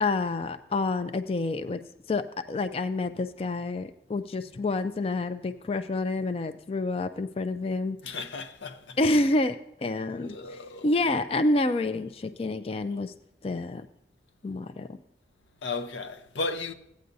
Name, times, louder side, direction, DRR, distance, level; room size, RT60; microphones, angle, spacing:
voice 1, 0.0-1.8 2.1-8.0 9.0-10.4 10.8-13.1 13.4-13.9 14.4-15.0, left 2 dB, 30° left, 0.3 m, -28 dB
voice 2, 8.0-9.0 10.0-11.0 15.6-16.7, left 3 dB, 85° left, 0.7 m, -35 dB
15.5 x 9.3 x 2.7 m
head